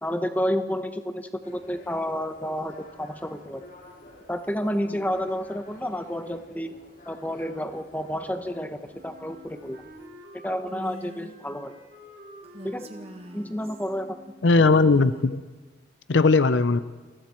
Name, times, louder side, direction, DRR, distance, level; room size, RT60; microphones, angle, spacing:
voice 1, 0.0-3.6 4.3-6.7 7.1-9.8 10.4-11.7 12.6-12.9 13.3-14.2, equal, 10° left, 8 dB, 1.1 m, -30 dB
sound 1, 1.4-10.1, left 1 dB, 45° left, 2.8 m, -50 dB
Wind instrument woodwind instrument, 8.9-14.7, equal, 55° right, 4.2 m, -49 dB
Female speech woman speaking, 10.7-11.4 12.4-13.9 14.5-15.3, equal, 30° right, 1.5 m, -43 dB
voice 2, 14.4-15.4 16.1-16.8, left 3 dB, 75° left, 13 dB, 0.6 m, -18 dB
29.5 x 21.5 x 4.5 m, 1.3 s
head